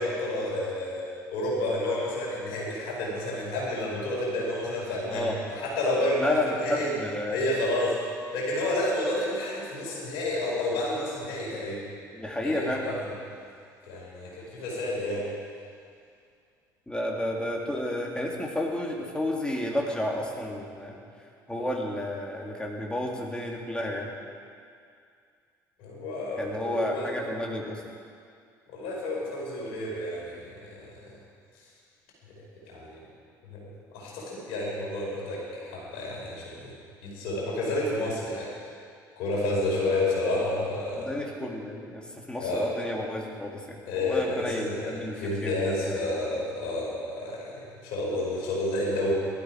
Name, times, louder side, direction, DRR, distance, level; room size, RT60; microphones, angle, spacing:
voice 1, 0.0-6.9 7.3-8.0 8.3-11.8 12.4-13.1 13.9-15.2 25.8-27.2 28.7-31.1 32.7-33.1 33.4-36.7 37.0-38.5 39.2-41.1 42.4-42.7 43.9-47.5 47.8-49.1, left 1 dB, 65° left, -4 dB, 4.9 m, -30 dB
voice 2, 6.2-7.5 12.1-12.8 16.9-21.0 21.5-24.1 26.4-27.8 41.0-46.0, left 1 dB, 10° left, -1 dB, 3.0 m, -31 dB
18.5 x 12.5 x 4.9 m, 2.3 s
figure-of-eight pair, 55°, 10 cm